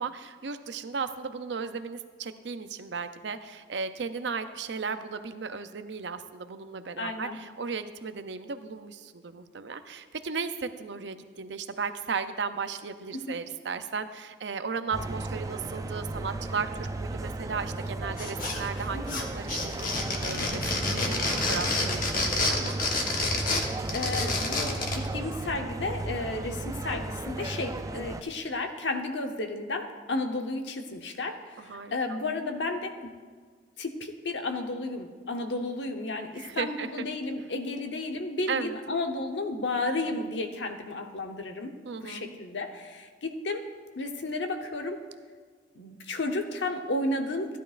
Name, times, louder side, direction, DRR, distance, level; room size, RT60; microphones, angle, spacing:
voice 1, 0.0-22.7 31.7-32.2 36.4-37.1 38.5-38.8 41.8-42.4, right 5 dB, 75° right, 10 dB, 0.6 m, -35 dB
voice 2, 7.0-7.4 13.1-13.4 18.9-19.2 23.6-33.1 33.8-41.7 42.0-43.6 44.0-45.0 45.7-47.6, left 2 dB, 80° left, 4 dB, 1.0 m, -33 dB
sound 1, 14.9-28.2, right 2 dB, 20° right, 0.3 m, -35 dB
sound 2, 18.2-18.8 19.1-25.1, left 3 dB, 50° left, 1.2 m, -29 dB
15.0 x 11.0 x 2.5 m, 1.5 s
head